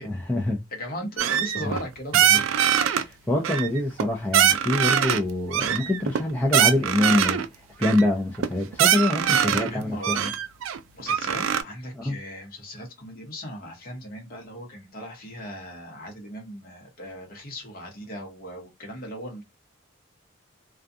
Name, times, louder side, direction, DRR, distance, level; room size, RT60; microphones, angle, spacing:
voice 1, 0.0-0.6 1.6-1.7 2.3-2.4 3.0-7.4 7.8-10.3 11.9-12.2, left 1 dB, 10° left, 0.5 m, -25 dB
voice 2, 0.7-2.6 9.3-10.2 10.9-19.4, equal, 45° left, 1.0 m, -38 dB
sound 1, 1.2-1.8 2.1-3.0 3.4-4.1 4.3-5.2 5.5-7.5 7.8-8.0 8.4-8.5 8.7-9.7 10.0-11.6, right 9 dB, 75° right, 0.3 m, -22 dB
2.4 x 2.3 x 2.6 m
head